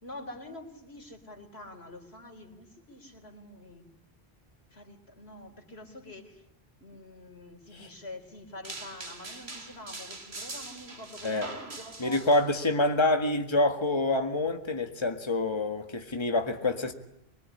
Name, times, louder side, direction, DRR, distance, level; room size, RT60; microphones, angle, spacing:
voice 1, 0.0-3.9 4.7-6.4 6.8-12.3 16.5-16.9, left 1 dB, 80° left, 5 dB, 3.9 m, -46 dB
sound 1, 8.6-12.6, right 2 dB, 90° right, 2.9 m, -42 dB
voice 2, 12.0-16.9, left 2 dB, 25° left, 5 dB, 1.9 m, -27 dB
25.0 x 22.5 x 9.8 m, 0.77 s
omnidirectional pair, 1.0 m